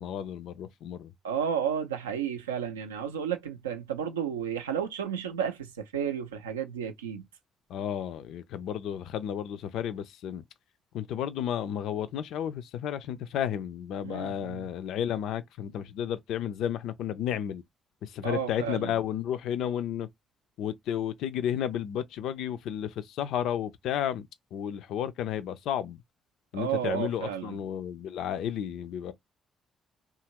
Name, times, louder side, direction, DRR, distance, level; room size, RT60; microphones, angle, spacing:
voice 1, 0.0-1.1 7.7-10.4 10.9-17.6 18.0-20.1 20.6-26.0 26.5-29.1, left 9 dB, 60° left, 0.3 m, -32 dB
voice 2, 1.2-7.2 14.0-14.7 18.2-19.0 26.5-27.6, right 8 dB, 80° right, 0.4 m, -32 dB
2.7 x 2.4 x 2.8 m
figure-of-eight pair, 45°, 0 cm